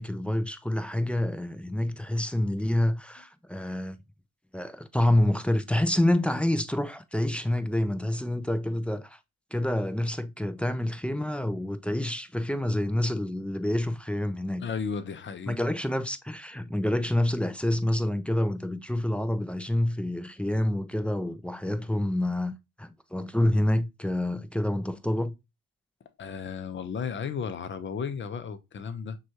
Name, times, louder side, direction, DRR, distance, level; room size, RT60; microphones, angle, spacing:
voice 1, 0.0-4.0 4.5-9.2 9.5-14.7 15.5-22.5 22.8-25.4, left 1 dB, 5° left, 0.4 m, -27 dB
voice 2, 14.6-15.6 26.2-29.2, left 6 dB, 40° left, 0.6 m, -34 dB
6.0 x 2.4 x 2.7 m
cardioid pair, 90°, 30 cm